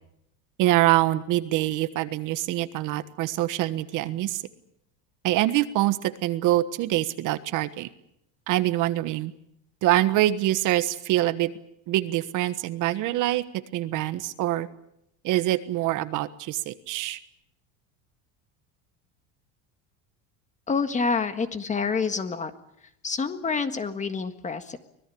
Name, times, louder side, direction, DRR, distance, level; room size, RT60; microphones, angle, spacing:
voice 1, 0.6-4.4 5.2-7.9 8.5-9.3 9.8-11.5 11.9-13.4 13.7-14.7 15.2-17.2, right 15 dB, 55° right, 12 dB, 1.4 m, -25 dB
voice 2, 20.7-22.5 23.0-24.8, left 5 dB, 20° left, 9 dB, 1.7 m, -27 dB
25.0 x 19.0 x 8.6 m, 0.79 s
cardioid pair, 140°, 38 cm